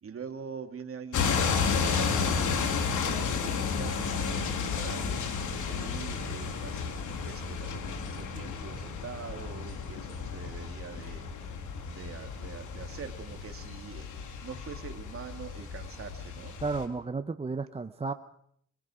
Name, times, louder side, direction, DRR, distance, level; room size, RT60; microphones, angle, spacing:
voice 1, 0.0-11.6 11.8-14.1 14.4-16.6, right 6 dB, 45° right, 6 dB, 2.5 m, -44 dB
sound 1, 1.1-16.9, left 5 dB, 80° left, 2.9 m, -32 dB
voice 2, 16.6-18.1, right 4 dB, 20° right, 10 dB, 0.8 m, -33 dB
23.5 x 23.0 x 5.0 m, 0.69 s
cardioid pair, 90°, 30 cm